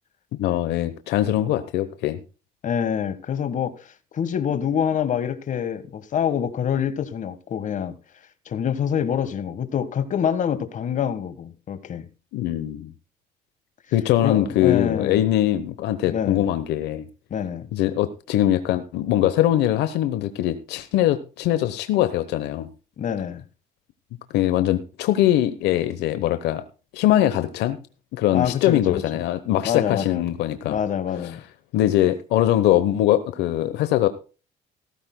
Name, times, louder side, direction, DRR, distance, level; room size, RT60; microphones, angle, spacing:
voice 1, 0.4-2.2 12.3-12.9 13.9-17.1 17.7-22.7 24.3-26.6 26.9-27.8 28.1-30.8 31.7-34.1, left 13 dB, 85° left, 1.0 m, -22 dB
voice 2, 2.6-7.9 8.5-12.0 14.2-15.2 16.0-16.4 17.3-17.7 23.0-23.4 28.3-29.0 29.6-30.3 30.7-31.4, left 8 dB, 50° left, 1.5 m, -26 dB
16.5 x 14.0 x 2.2 m
cardioid pair, 110°, 17 cm